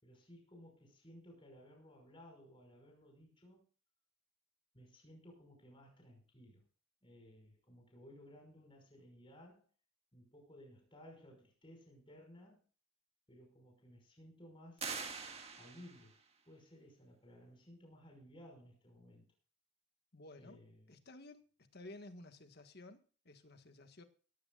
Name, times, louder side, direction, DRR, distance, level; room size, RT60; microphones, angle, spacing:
voice 1, 0.0-3.6 4.7-6.6 7.0-9.7 10.1-12.6 13.3-14.9 15.6-16.2 16.5-19.3 20.4-20.9, equal, 25° left, 2 dB, 5.7 m, -58 dB
sound 1, 14.8-16.2, right 5 dB, 30° right, 1.9 m, -44 dB
voice 2, 20.1-20.6 20.9-21.5 21.7-24.0, left 2 dB, 50° left, 7 dB, 1.7 m, -54 dB
18.0 x 15.5 x 2.5 m, 0.38 s
head